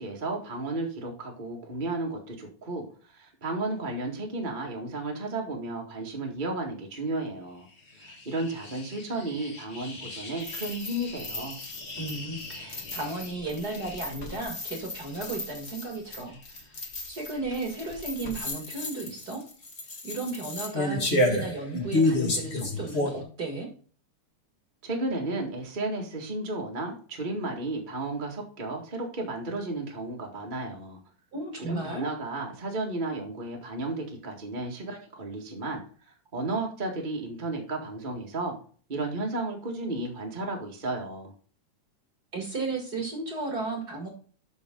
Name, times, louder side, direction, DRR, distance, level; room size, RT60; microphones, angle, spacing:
voice 1, 0.0-7.7 7.9-11.6 24.8-31.0 31.6-35.8 36.3-38.5 38.9-41.3, right 2 dB, 20° right, 0 dB, 1.4 m, -33 dB
sound 1, 7.8-23.2, left 2 dB, 30° left, 1.2 m, -32 dB
voice 2, 12.0-16.4 17.1-19.4 20.0-23.7 31.3-32.1 42.3-44.1, right 3 dB, 35° right, 2 dB, 1.9 m, -34 dB
12.5 x 5.3 x 3.8 m, 0.41 s
omnidirectional pair, 3.5 m